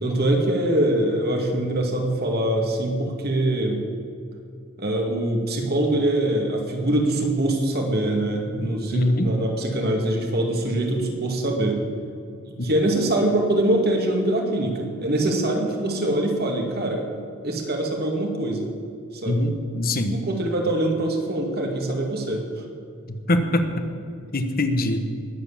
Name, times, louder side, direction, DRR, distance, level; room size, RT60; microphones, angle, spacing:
voice 1, 0.0-3.8 4.8-11.8 12.4-17.1 17.4-18.7 19.1-19.4 20.1-22.5, right 1 dB, 50° right, 2 dB, 2.3 m, -23 dB
voice 2, 8.9-9.3 19.3-20.2 23.1-23.7 24.3-25.0, left 1 dB, 45° left, 7 dB, 1.3 m, -23 dB
20.0 x 7.9 x 7.4 m, 2.4 s
head